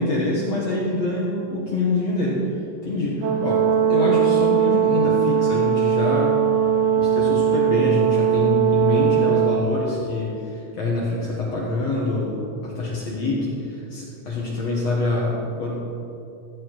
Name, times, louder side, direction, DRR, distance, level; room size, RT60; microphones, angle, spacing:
voice 1, 0.0-3.6 3.9-6.4 7.0-15.8, left 2 dB, 65° left, -6 dB, 1.6 m, -25 dB
Brass instrument, 3.2-9.6, right 8 dB, 75° right, 2.0 m, -19 dB
15.0 x 8.5 x 4.7 m, 2.8 s
omnidirectional pair, 5.4 m